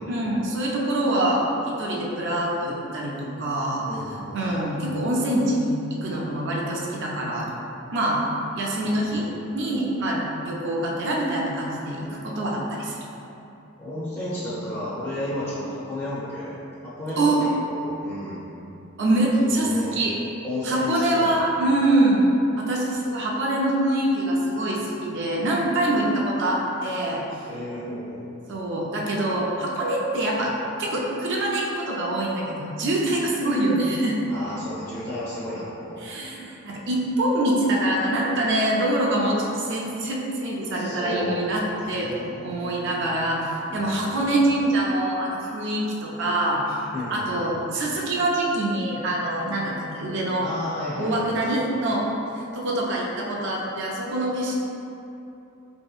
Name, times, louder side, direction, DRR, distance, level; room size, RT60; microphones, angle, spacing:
voice 1, 0.1-3.8 4.3-7.5 7.9-8.2 8.6-9.3 9.5-12.9 17.2-17.5 19.0-20.1 20.6-22.2 22.6-27.4 28.5-30.5 30.8-34.2 36.0-42.1 42.4-46.8 47.1-50.5 51.0-52.1 52.3-54.6, right 1 dB, 60° right, -3 dB, 0.5 m, -24 dB
voice 2, 3.8-4.6 8.8-9.4 13.8-16.6 16.8-18.4 19.4-20.0 20.4-21.4 27.5-28.2 34.3-36.0 40.7-42.8 43.7-44.2 46.9-47.5 50.4-51.3, left 1 dB, 15° left, -10 dB, 0.5 m, -33 dB
3.4 x 2.7 x 2.3 m, 2.9 s
head